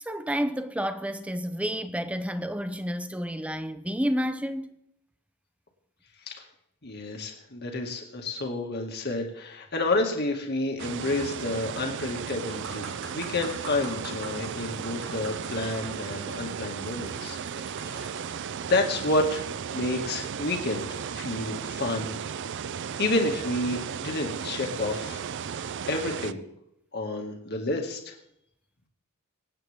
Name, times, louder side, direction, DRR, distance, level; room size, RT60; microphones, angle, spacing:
voice 1, 0.0-4.8, equal, 5° right, 0.7 m, -30 dB
voice 2, 6.8-17.4 17.8-19.4 19.7-22.2 23.0-25.2 25.9-26.4 26.9-28.1, left 2 dB, 50° left, 2.2 m, -30 dB
sound 1, 10.8-26.3, right 7 dB, 55° right, 0.4 m, -35 dB
sound 2, 12.1-18.5 19.2-19.3, right 3 dB, 85° right, 5.4 m, -44 dB
24.5 x 9.1 x 3.6 m
head